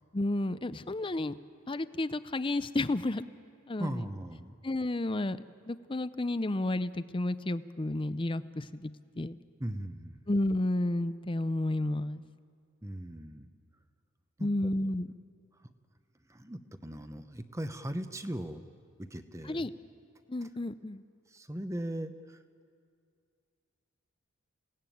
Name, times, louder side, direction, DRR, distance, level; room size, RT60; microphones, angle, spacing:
voice 1, 0.1-1.3 1.7-3.3 3.7-4.0 4.6-5.4 5.7-8.9 9.2-9.4 10.3-12.2 14.4-15.1 19.5-19.7 20.3-21.0, left 1 dB, 25° left, 14 dB, 0.6 m, -31 dB
voice 2, 3.8-4.6 9.6-10.2 12.8-13.5 14.4-14.7 15.5-15.7 16.3-18.6 19.0-19.7 20.4-20.5 21.3-22.4, right 1 dB, 15° right, 9 dB, 0.9 m, -39 dB
28.5 x 17.5 x 9.2 m, 2.3 s
head